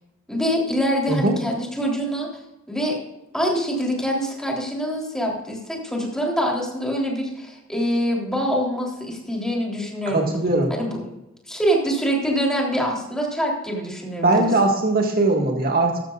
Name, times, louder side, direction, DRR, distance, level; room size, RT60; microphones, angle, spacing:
voice 1, 0.3-2.3 2.7-2.9 3.3-10.3 10.7-11.0 11.5-14.4, equal, 5° left, -2 dB, 3.4 m, -24 dB
voice 2, 10.1-10.7 14.2-16.0, right 2 dB, 50° right, 1 dB, 1.9 m, -20 dB
14.5 x 13.5 x 2.5 m, 0.96 s
head